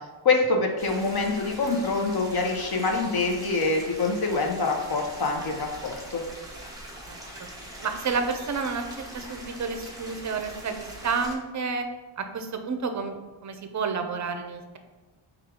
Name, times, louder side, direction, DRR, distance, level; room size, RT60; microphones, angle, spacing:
voice 1, 0.2-6.2, left 3 dB, 45° left, 2 dB, 0.8 m, -25 dB
sound 1, 0.8-11.4, right 1 dB, 5° right, 1.0 m, -42 dB
voice 2, 7.8-11.9 12.2-14.8, right 5 dB, 35° right, 6 dB, 0.5 m, -30 dB
4.4 x 2.5 x 4.8 m, 1.3 s
wide cardioid pair, 110°, 49 cm